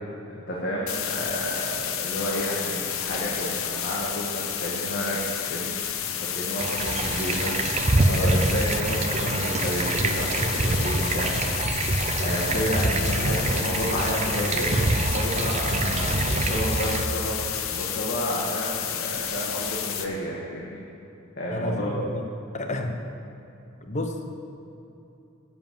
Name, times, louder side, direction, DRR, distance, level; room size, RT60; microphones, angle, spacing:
voice 1, 0.3-5.2 5.5-5.8 6.3-11.7 12.2-20.8 21.4-22.0, equal, 50° left, -5 dB, 1.6 m, -31 dB
sound 1, 0.9-20.1, left 9 dB, 75° left, 0.8 m, -31 dB
sound 2, 6.6-17.0, right 2 dB, 30° right, 0.6 m, -26 dB
voice 2, 21.5-22.2 22.5-23.0 23.8-24.2, left 1 dB, 35° left, 4 dB, 0.9 m, -30 dB
11.0 x 7.4 x 7.4 m, 2.9 s
head